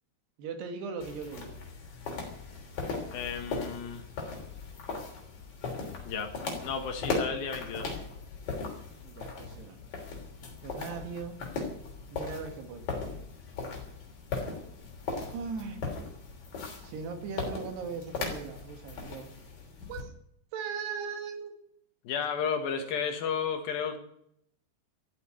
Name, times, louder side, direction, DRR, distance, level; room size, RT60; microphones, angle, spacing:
voice 1, 0.4-1.5 9.0-9.8 10.6-11.4 12.1-13.1 15.3-15.8 16.8-19.3 19.9-20.1 20.5-21.5, right 5 dB, 80° right, 5 dB, 4.0 m, -39 dB
sound 1, 1.0-20.0, left 4 dB, 45° left, 4.3 m, -38 dB
voice 2, 3.1-4.0 6.0-8.0 22.0-24.0, left 6 dB, 65° left, 6 dB, 3.1 m, -33 dB
13.5 x 8.4 x 9.7 m, 0.71 s
omnidirectional pair, 4.8 m